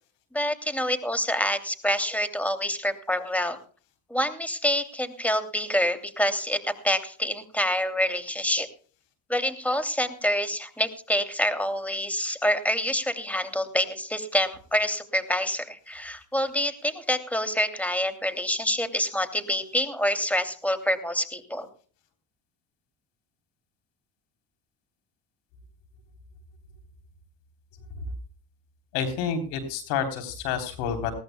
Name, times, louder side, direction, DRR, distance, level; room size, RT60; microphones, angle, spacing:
voice 1, 0.3-3.6 4.1-8.7 9.3-21.7, equal, 5° left, 9 dB, 2.7 m, -27 dB
voice 2, 28.9-31.1, left 7 dB, 85° left, 7 dB, 3.8 m, -29 dB
20.0 x 17.0 x 2.2 m, 0.42 s
supercardioid pair, 75°, 48 cm